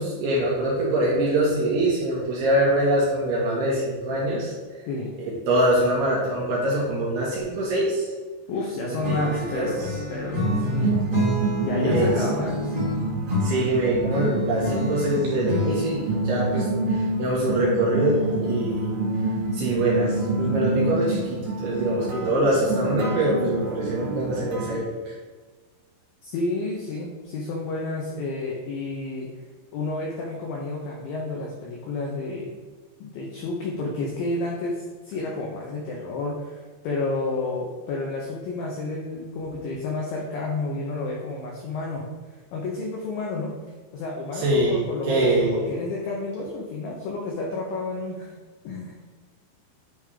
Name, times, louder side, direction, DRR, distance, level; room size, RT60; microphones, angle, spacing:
voice 1, 0.0-4.5 5.2-8.1 9.1-9.9 11.8-12.1 13.4-18.9 19.5-25.1 44.4-45.6, right 1 dB, 70° right, -6 dB, 3.1 m, -24 dB
voice 2, 8.5-11.0 11.6-12.8 26.2-29.3 29.7-32.6 33.0-42.0 42.5-43.5 43.9-48.3 48.6-49.1, left 2 dB, 80° left, -2 dB, 2.0 m, -30 dB
Acoustic guitar / Strum, 9.0-16.2, left 3 dB, 50° right, 0.9 m, -30 dB
sound 1, 10.4-24.8, right 2 dB, 85° right, 3.7 m, -27 dB
9.9 x 3.5 x 5.0 m, 1.4 s
omnidirectional pair, 5.3 m